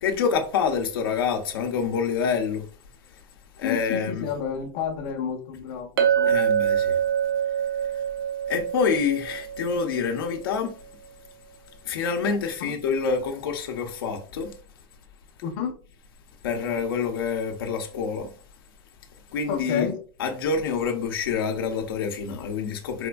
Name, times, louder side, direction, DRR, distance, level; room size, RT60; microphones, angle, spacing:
voice 1, 0.0-2.6 3.6-4.2 6.2-7.0 7.9-8.0 8.5-10.7 11.8-14.5 16.4-18.3 19.3-19.9 20.2-23.1, left 6 dB, 90° left, 0.7 m, -27 dB
voice 2, 3.6-6.4 12.6-12.7 15.4-15.8 19.5-20.0, left 7 dB, 45° left, 0.6 m, -30 dB
Chink clink, 6.0-10.4, right 9 dB, 80° right, 0.7 m, -25 dB
4.2 x 2.5 x 2.2 m
supercardioid pair, 160°, 12 cm